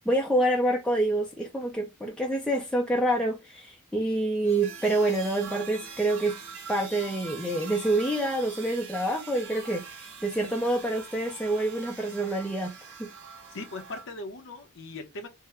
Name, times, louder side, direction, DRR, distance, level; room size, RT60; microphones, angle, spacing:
voice 1, 0.1-6.4 6.7-12.7 13.0-13.1, right 1 dB, 5° left, 0.5 m, -27 dB
sound 1, 4.4-14.0, right 5 dB, 60° right, 1.6 m, -43 dB
voice 2, 13.5-15.3, left 2 dB, 60° left, 0.7 m, -39 dB
3.6 x 2.1 x 4.2 m
head